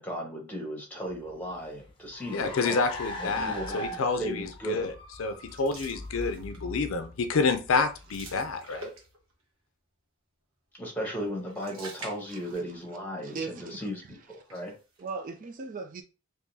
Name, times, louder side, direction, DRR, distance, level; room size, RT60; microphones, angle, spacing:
voice 1, 0.0-2.8 3.2-4.9 10.8-14.7, equal, 10° left, 0 dB, 1.1 m, -36 dB
Car, 1.1-8.8, left 1 dB, 25° left, 0.7 m, -41 dB
voice 2, 2.3-4.9 5.2-8.9, left 4 dB, 75° left, 9 dB, 0.5 m, -28 dB
sound 1, 5.4-6.8 7.2-7.4 7.7-9.4 11.2-13.0 13.3-13.4 14.2-15.1, right 2 dB, 75° right, 1.1 m, -47 dB
voice 3, 13.2-14.1 15.0-16.0, right 4 dB, 40° right, 5 dB, 0.4 m, -39 dB
3.7 x 2.7 x 2.7 m, 0.33 s
head